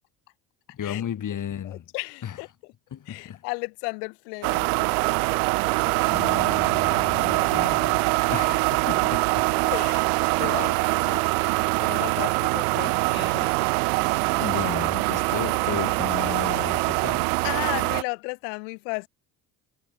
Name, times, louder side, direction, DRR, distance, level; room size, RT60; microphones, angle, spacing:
voice 1, 0.7-1.9 2.2-2.4 2.9-3.4 5.7-9.7 10.4-10.8 14.1-17.3, left 9 dB, 40° left, 1.8 m, -35 dB
voice 2, 1.6-2.5 3.1-5.1 9.7-10.1 10.4-11.3 11.8-13.7 17.4-19.1, left 39 dB, 75° left, 0.7 m, -34 dB
sound 1, 4.4-18.0, right 34 dB, 75° right, 0.5 m, -23 dB
hypercardioid pair, 65°, 47 cm